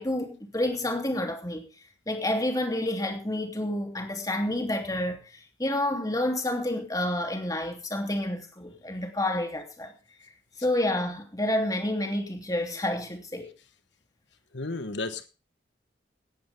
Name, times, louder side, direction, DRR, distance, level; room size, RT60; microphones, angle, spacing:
voice 1, 0.0-1.7 2.1-9.9 10.6-13.5, left 1 dB, 20° left, 3.1 m, -29 dB
voice 2, 14.5-15.3, left 3 dB, 80° left, 1.3 m, -33 dB
17.5 x 11.0 x 3.6 m
head